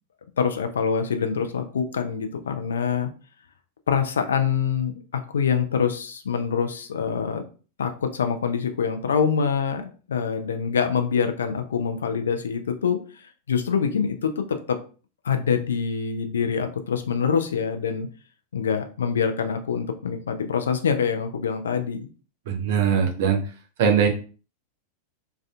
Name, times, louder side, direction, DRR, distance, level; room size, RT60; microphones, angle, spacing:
voice 1, 0.4-3.1 3.9-7.4 7.8-14.8 15.2-18.1 18.5-22.1, left 6 dB, 65° left, 7 dB, 0.3 m, -25 dB
voice 2, 22.5-23.4 23.8-24.1, right 7 dB, 50° right, 3 dB, 0.6 m, -20 dB
2.3 x 2.3 x 2.3 m, 0.37 s
figure-of-eight pair, 90°, 0 cm